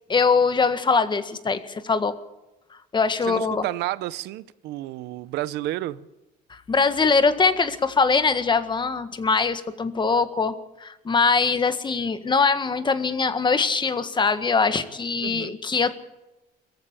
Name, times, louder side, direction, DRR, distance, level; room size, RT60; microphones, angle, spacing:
voice 1, 0.1-2.1 2.9-3.6 6.5-16.0, left 4 dB, 25° left, 1.7 m, -22 dB
voice 2, 3.3-6.1 15.2-15.5, right 16 dB, 85° right, 0.8 m, -31 dB
23.0 x 15.0 x 8.8 m
cardioid pair, 110°, 17 cm